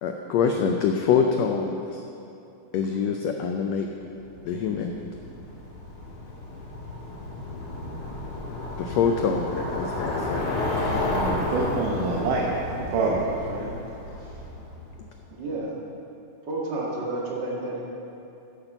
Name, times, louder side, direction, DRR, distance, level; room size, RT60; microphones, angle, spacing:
voice 1, 0.0-2.0 2.7-3.9 4.4-4.9 8.7-10.5, left 6 dB, 90° left, 3 dB, 1.5 m, -25 dB
Bicycle, 4.2-15.1, left 2 dB, 70° left, 3.7 m, -32 dB
voice 2, 11.1-12.5 12.9-13.7, right 3 dB, 75° right, -3 dB, 2.6 m, -26 dB
voice 3, 15.3-15.7 16.4-17.9, right 2 dB, 35° right, -4 dB, 2.2 m, -30 dB
10.5 x 8.5 x 6.8 m, 2.7 s
omnidirectional pair, 3.8 m